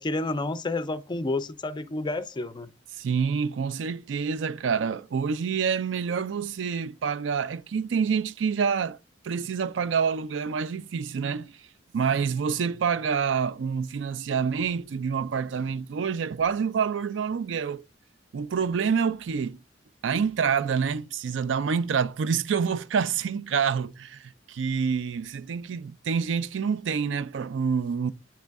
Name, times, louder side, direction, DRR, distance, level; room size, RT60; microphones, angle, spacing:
voice 1, 0.0-2.7, left 2 dB, 25° left, 0.4 m, -30 dB
voice 2, 2.9-9.0 9.2-11.5 11.9-17.8 18.3-19.6 20.0-28.1, right 6 dB, 75° right, 0.4 m, -27 dB
9.1 x 3.2 x 3.4 m
head